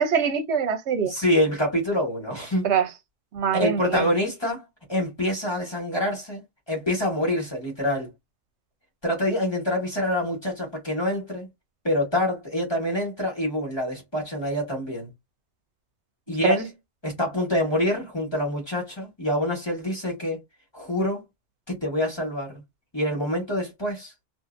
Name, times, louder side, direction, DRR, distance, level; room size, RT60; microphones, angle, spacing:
voice 1, 0.0-1.1 2.6-2.9 3.3-4.1 16.4-16.6, right 7 dB, 75° right, 1.0 m, -23 dB
voice 2, 1.0-2.7 3.5-4.6 4.9-8.1 9.0-11.5 11.8-15.1 16.3-16.7 17.0-20.4 20.7-21.2 21.7-22.5 22.9-24.1, left 1 dB, 25° left, 1.4 m, -26 dB
2.7 x 2.5 x 2.5 m
omnidirectional pair, 1.2 m